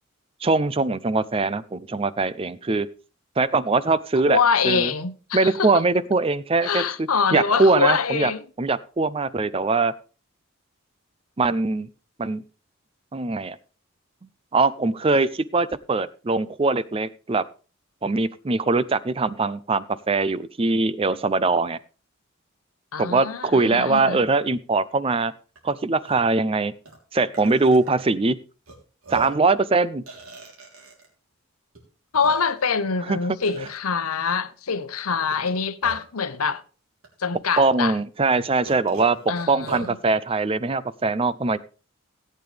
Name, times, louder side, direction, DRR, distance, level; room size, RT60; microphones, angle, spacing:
voice 1, 0.4-2.9 3.4-4.9 5.3-6.8 7.3-8.3 8.6-9.9 11.4-11.9 12.2-12.4 13.1-13.6 14.5-17.4 18.0-21.8 23.0-25.3 25.6-26.7 27.1-28.4 29.1-30.0 33.1-33.2 37.6-39.2 39.5-41.6, right 3 dB, 25° right, 0.4 m, -22 dB
voice 2, 4.3-5.8 6.6-8.4 22.9-24.2 32.1-36.6 37.2-38.0 39.3-40.0, left 5 dB, 90° left, 0.9 m, -24 dB
Burping eructation, 25.6-25.7 26.0-26.2 26.9-27.0 27.3-28.0 28.7-28.8 29.0-29.5 30.1-31.1 31.7-31.8 32.1-32.7 33.4-33.8 35.3-36.2 37.0-37.1 37.6-37.7 38.6-39.9, right 4 dB, 75° right, 3.4 m, -39 dB
17.0 x 8.8 x 3.3 m
head